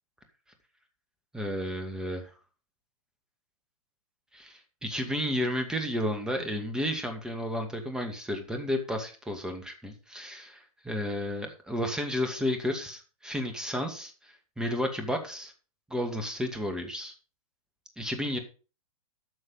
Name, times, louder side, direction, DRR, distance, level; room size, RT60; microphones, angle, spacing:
voice 1, 1.3-2.2 4.3-15.5 15.9-17.1 18.0-18.4, left 1 dB, 5° right, 5 dB, 2.3 m, -32 dB
12.5 x 6.5 x 5.4 m, 0.35 s
figure-of-eight pair, 115°, 18 cm